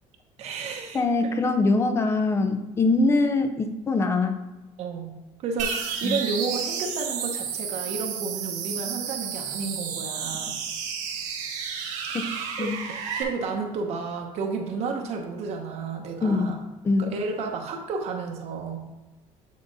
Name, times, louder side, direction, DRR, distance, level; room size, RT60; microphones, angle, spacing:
voice 1, 0.4-1.0 4.8-10.5 12.1-16.6 17.0-18.9, right 4 dB, 60° right, 2 dB, 0.9 m, -32 dB
voice 2, 0.9-4.4 6.0-6.2 12.1-12.3 12.6-12.8 16.2-16.5 16.8-17.1, left 3 dB, 20° left, 8 dB, 0.6 m, -23 dB
sound 1, 5.6-13.2, right 7 dB, 80° right, 1.7 m, -31 dB
8.4 x 4.1 x 4.0 m, 1.1 s
cardioid pair, 150°, 13 cm